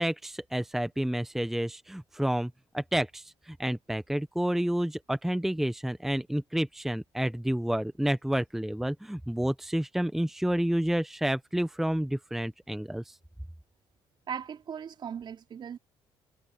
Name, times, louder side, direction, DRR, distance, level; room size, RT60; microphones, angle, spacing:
voice 1, 0.0-13.2, right 1 dB, 5° right, 0.8 m, -30 dB
voice 2, 14.3-15.8, right 7 dB, 50° right, 4.0 m, -38 dB
cardioid pair, 95°, 10 cm